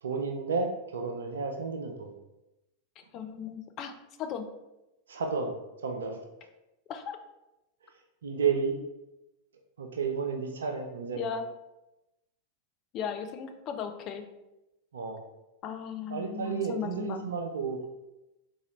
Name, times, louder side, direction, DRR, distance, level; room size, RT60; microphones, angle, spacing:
voice 1, 0.0-2.1 5.1-5.6 5.8-6.2 8.2-8.8 9.8-11.3 14.9-15.2 16.1-17.9, right 5 dB, 65° right, 4 dB, 0.3 m, -32 dB
voice 2, 3.0-3.9 4.2-4.4 6.9-7.2 11.2-11.5 12.9-14.2 15.6-17.3, left 7 dB, 35° left, 6 dB, 0.4 m, -37 dB
3.7 x 2.6 x 3.1 m, 0.96 s
figure-of-eight pair, 90°, 0 cm